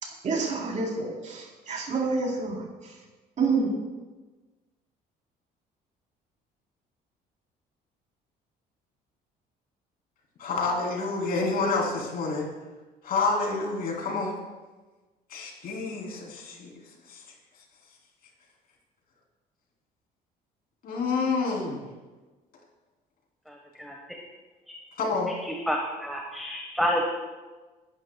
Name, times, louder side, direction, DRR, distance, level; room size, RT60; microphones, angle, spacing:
voice 1, 0.0-3.0 3.4-3.7, right 4 dB, 45° right, -2 dB, 3.9 m, -28 dB
voice 2, 10.4-12.5 13.0-14.4 15.3-16.7 17.1-17.2 20.8-21.8 25.0-25.3, left 3 dB, 60° left, -1 dB, 3.6 m, -28 dB
voice 3, 23.5-23.9 25.7-27.0, equal, ahead, 0 dB, 1.4 m, -29 dB
22.0 x 11.0 x 2.4 m, 1.3 s
cardioid pair, 110°, 17 cm